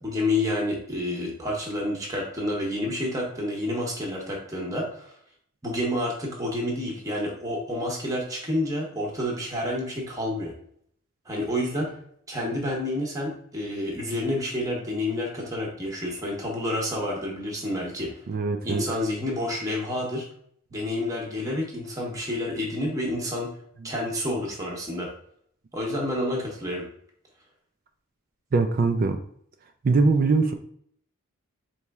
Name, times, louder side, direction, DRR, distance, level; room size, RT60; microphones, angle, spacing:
voice 1, 0.0-5.1 5.6-10.5 11.3-12.0 12.3-18.2 18.6-20.3 20.7-23.5 23.8-25.1 25.7-26.9, left 1 dB, 15° right, -2 dB, 0.8 m, -29 dB
voice 2, 18.3-18.9 28.5-29.2 29.8-30.5, right 3 dB, 40° right, 6 dB, 0.3 m, -22 dB
4.2 x 3.1 x 3.5 m, 0.65 s
head